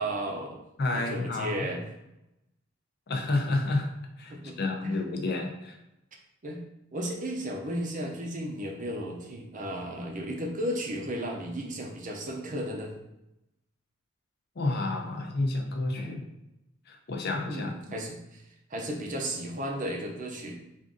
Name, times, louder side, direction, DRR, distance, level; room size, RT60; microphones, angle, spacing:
voice 1, 0.0-0.6 0.9-1.8 4.3-5.0 6.4-6.6 6.9-12.9 17.5-18.4 18.7-20.6, right 1 dB, 40° right, 1 dB, 0.6 m, -34 dB
voice 2, 0.8-1.7 3.1-3.9 4.2-5.8 14.6-16.3 16.9-17.7, left 2 dB, 50° left, 2 dB, 0.6 m, -30 dB
3.6 x 2.5 x 3.8 m, 0.89 s
head